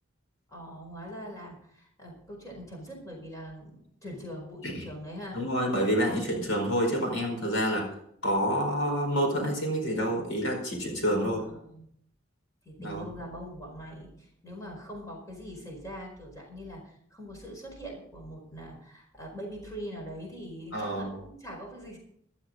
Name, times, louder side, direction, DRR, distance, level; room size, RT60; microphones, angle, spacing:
voice 1, 0.5-5.4 11.2-11.9 12.6-22.0, equal, 15° left, 0 dB, 4.6 m, -42 dB
voice 2, 5.3-7.9 8.2-11.4 12.8-13.0 20.7-21.1, equal, 75° left, 2 dB, 4.6 m, -28 dB
15.0 x 12.5 x 3.9 m, 0.70 s
head